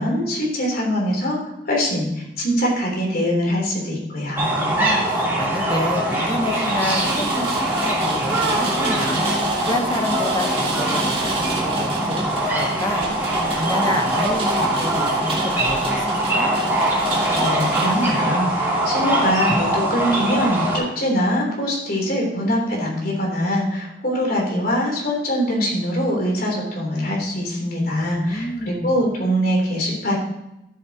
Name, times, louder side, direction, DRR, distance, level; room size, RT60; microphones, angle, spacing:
voice 1, 0.0-1.4 1.7-4.5 17.3-30.2, equal, 55° left, -2 dB, 3.5 m, -23 dB
sound 1, 4.4-20.8, right 1 dB, 15° right, 3.3 m, -22 dB
voice 2, 4.5-13.3 13.6-16.5 27.9-29.0, left 1 dB, 25° left, 4 dB, 1.1 m, -29 dB
Rain, 5.9-18.2, right 2 dB, 35° right, 2.3 m, -30 dB
13.0 x 8.1 x 3.0 m, 0.89 s
head